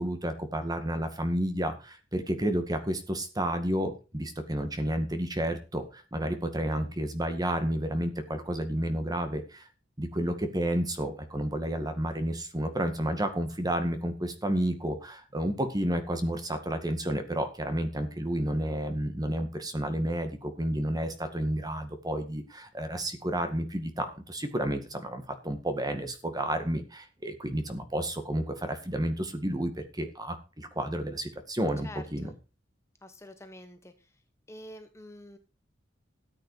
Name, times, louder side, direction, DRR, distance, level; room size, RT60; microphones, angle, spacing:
voice 1, 0.0-9.7 10.0-32.3, right 1 dB, 20° right, 8 dB, 2.0 m, -31 dB
voice 2, 31.8-32.3 33.0-34.1 34.5-35.4, left 1 dB, 15° left, 7 dB, 1.1 m, -47 dB
13.5 x 8.5 x 4.9 m, 0.31 s
head